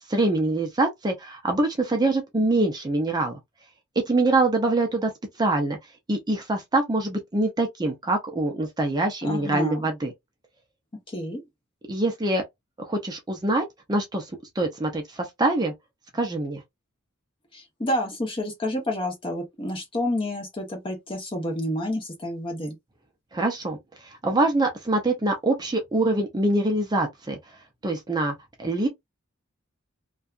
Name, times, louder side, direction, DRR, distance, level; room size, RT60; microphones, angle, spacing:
voice 1, 0.0-3.4 4.1-5.1 5.4-5.8 6.1-10.1 11.9-12.4 12.8-14.3 14.6-15.7 16.1-16.6 23.3-27.4 27.8-28.9, right 2 dB, 20° right, 0.5 m, -24 dB
voice 2, 9.2-9.8 11.1-11.4 17.5-22.8, left 1 dB, 25° left, 0.9 m, -29 dB
2.7 x 2.3 x 2.3 m
head